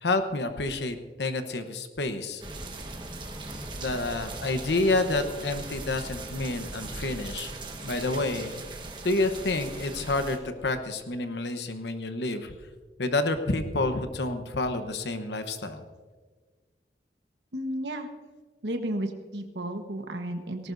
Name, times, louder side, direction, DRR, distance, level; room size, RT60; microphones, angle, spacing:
voice 1, 0.0-2.4 3.8-7.5 7.8-12.5 13.0-15.8, left 2 dB, 80° left, 8 dB, 1.0 m, -29 dB
sound 1, 2.4-10.4, right 2 dB, 25° right, 1.4 m, -39 dB
voice 2, 17.5-18.1 18.6-20.7, right 1 dB, 80° right, 5 dB, 1.3 m, -33 dB
18.5 x 18.5 x 2.7 m, 1.4 s
head